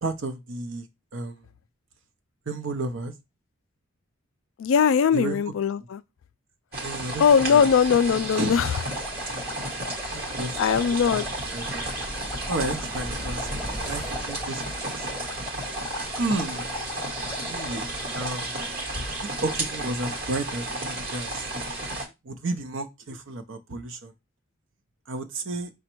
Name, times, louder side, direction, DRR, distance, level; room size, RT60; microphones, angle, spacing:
voice 1, 0.0-0.9 1.1-1.4 2.5-3.1 5.1-5.4 6.7-7.2 7.5-7.6 8.3-8.6 9.8-10.6 10.9-11.2 11.5-11.9 12.5-13.5 13.7-15.3 16.2-16.7 17.4-18.6 19.2-21.4 22.2-24.1 25.1-25.7, right 2 dB, 60° right, 0.7 m, -32 dB
voice 2, 4.6-6.0 7.2-8.8 10.0-10.1 10.6-11.3, left 7 dB, 65° left, 0.3 m, -20 dB
sound 1, 6.7-22.1, right 2 dB, 45° right, 1.1 m, -33 dB
sound 2, 8.4-18.4, left 2 dB, 15° left, 0.5 m, -40 dB
sound 3, 10.5-15.4 15.8-15.9, equal, 20° right, 0.8 m, -39 dB
5.1 x 2.2 x 4.4 m
head